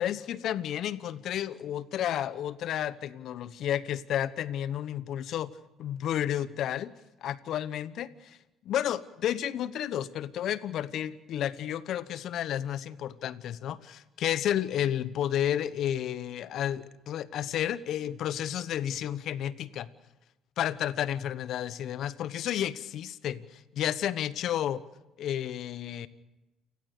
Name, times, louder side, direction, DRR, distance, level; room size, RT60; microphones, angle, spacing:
voice 1, 0.0-5.5 5.8-6.9 7.2-8.4 8.6-19.9 20.6-24.8 25.2-26.1, left 11 dB, 65° left, 17 dB, 1.1 m, -31 dB
29.0 x 19.5 x 6.9 m, 1.0 s
hypercardioid pair, 55°, 0 cm